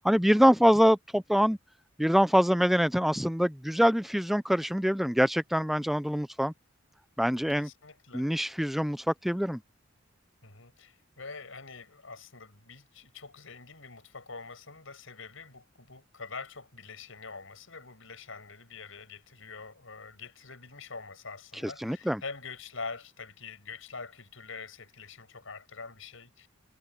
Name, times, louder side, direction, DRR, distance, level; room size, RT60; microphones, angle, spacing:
voice 1, 0.0-1.6 2.0-6.5 7.2-7.7 8.1-9.6 21.8-22.2, equal, ahead, 0.4 m, -24 dB
voice 2, 7.5-8.3 10.4-26.5, left 4 dB, 75° left, 6.2 m, -45 dB
head